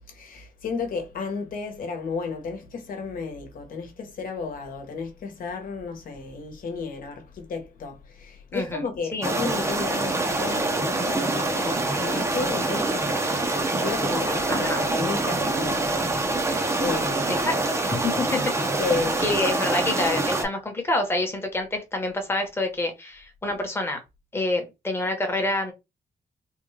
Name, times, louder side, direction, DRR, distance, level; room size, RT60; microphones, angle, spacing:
voice 1, 0.0-17.4 17.9-18.0 18.8-19.2 23.5-23.6, left 4 dB, 65° left, 1.0 m, -33 dB
voice 2, 8.5-9.3 14.5-14.8 17.3-17.4 17.8-18.4 19.2-24.0 24.3-25.7, left 2 dB, 15° left, 1.0 m, -27 dB
sound 1, 9.2-20.4, right 2 dB, 20° right, 0.6 m, -25 dB
3.5 x 2.3 x 3.2 m
wide cardioid pair, 165°, 16 cm